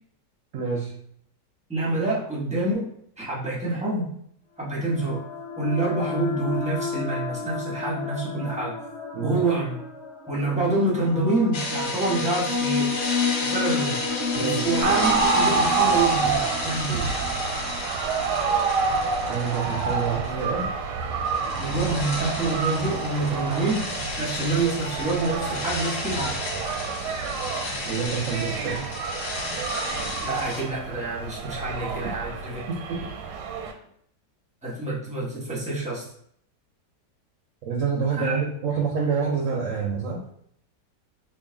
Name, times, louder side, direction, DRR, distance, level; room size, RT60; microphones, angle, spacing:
voice 1, 0.5-0.9 9.1-9.4 14.3-14.7 19.3-20.7 27.9-28.9 32.7-32.8 37.7-40.2, right 5 dB, 70° right, -2 dB, 0.8 m, -27 dB
voice 2, 1.7-2.9 3.2-4.1 4.6-5.2 5.6-8.8 9.2-9.8 10.3-13.1 13.4-14.0 14.4-17.1 21.6-23.9 24.2-26.4 30.2-32.6 34.6-36.0 38.1-38.4, right 2 dB, 5° right, -6 dB, 0.6 m, -27 dB
sound 1, 4.7-18.3, left 5 dB, 45° left, 1.1 m, -31 dB
sound 2, 11.5-20.6 20.9-30.6, left 3 dB, 70° left, 1.4 m, -33 dB
sound 3, 14.8-33.7, right 5 dB, 90° right, 1.2 m, -28 dB
3.0 x 2.5 x 3.7 m, 0.67 s
omnidirectional pair, 1.8 m